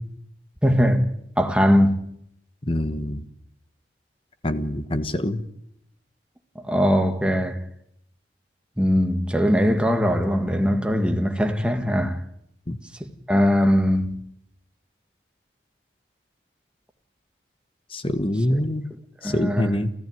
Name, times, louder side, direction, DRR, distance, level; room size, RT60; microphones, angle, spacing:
voice 1, 0.6-2.1 6.6-7.6 8.8-12.2 13.0-14.2 18.5-18.6 19.2-19.8, equal, 5° right, 1.7 m, -21 dB
voice 2, 2.6-3.2 4.4-5.4 12.7-12.8 17.9-18.9 19.2-19.9, left 1 dB, 30° left, 1.3 m, -25 dB
29.5 x 14.5 x 9.3 m
head